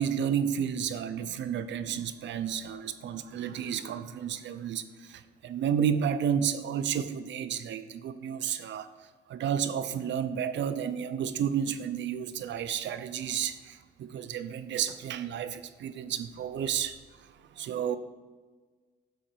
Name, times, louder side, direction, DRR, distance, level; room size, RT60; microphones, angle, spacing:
voice 1, 0.0-8.9 9.3-17.0 17.5-18.0, right 8 dB, 65° right, 0.6 m, -31 dB
9.4 x 3.8 x 6.2 m
cardioid pair, 90°, 20 cm